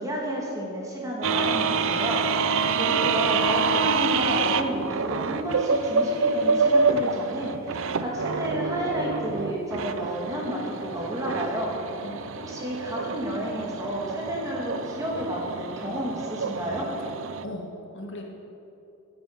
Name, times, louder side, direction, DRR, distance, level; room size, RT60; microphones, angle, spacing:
voice 1, 0.0-11.8 12.4-16.9, equal, 15° right, -3 dB, 2.5 m, -31 dB
sound 1, 1.2-17.5, right 4 dB, 60° right, 0.5 m, -27 dB
voice 2, 13.0-13.5 17.4-18.2, left 1 dB, 55° left, 1 dB, 1.7 m, -40 dB
11.5 x 9.5 x 7.8 m, 2.8 s
head